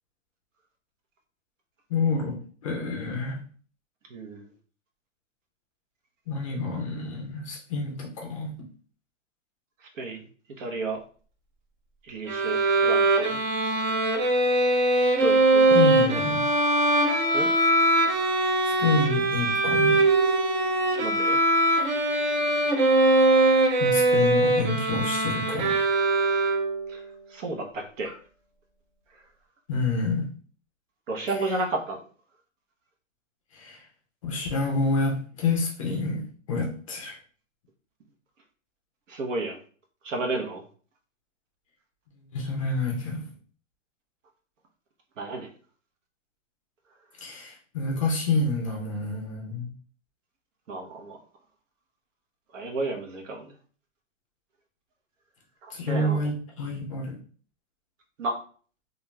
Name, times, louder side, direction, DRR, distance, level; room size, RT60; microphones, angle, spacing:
voice 1, 1.9-3.4 6.3-8.5 14.9-15.2 15.7-16.4 18.4-20.0 23.8-25.8 29.7-30.3 33.5-33.8 34.2-37.2 42.3-43.2 47.2-49.7 55.7-57.2, left 3 dB, 25° left, 0 dB, 0.4 m, -28 dB
voice 2, 4.1-4.5 9.8-10.2 10.6-11.0 12.0-13.4 15.2-15.7 17.3-17.5 21.0-21.4 26.9-27.0 27.3-28.1 31.1-32.0 39.1-39.6 40.0-40.6 45.2-45.5 50.7-51.2 52.5-53.5 55.6-56.2 58.2-58.4, right 2 dB, 70° right, 3 dB, 0.9 m, -32 dB
Bowed string instrument, 12.3-26.9, right 2 dB, 40° right, 0.5 m, -22 dB
2.4 x 2.2 x 3.1 m, 0.43 s
hypercardioid pair, 150°, 39 cm